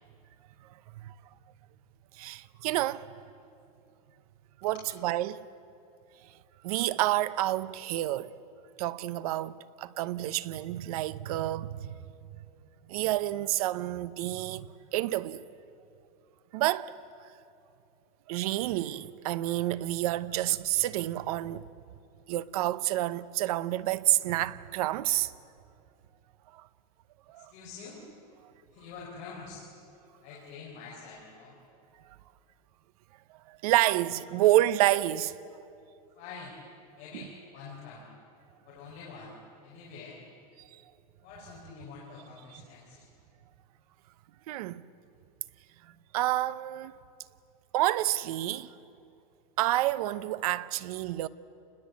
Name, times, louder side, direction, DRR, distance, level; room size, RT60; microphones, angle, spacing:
voice 1, 2.2-3.1 4.6-5.4 6.6-8.3 8.8-12.0 12.9-15.4 16.5-16.9 18.3-21.6 22.3-25.3 26.5-26.6 27.3-27.5 33.5-35.4 37.1-37.3 42.5-42.6 44.5-44.8 46.1-46.9 47.7-48.7 49.6-51.3, right 15 dB, 70° right, 0.8 m, -29 dB
voice 2, 27.3-28.0 28.7-29.6 30.2-31.6 36.1-36.6 37.0-38.0 38.7-39.3 39.6-40.2 41.2-43.0, left 5 dB, 40° left, 4.7 m, -46 dB
27.5 x 20.5 x 8.3 m
supercardioid pair, 170°, 20 cm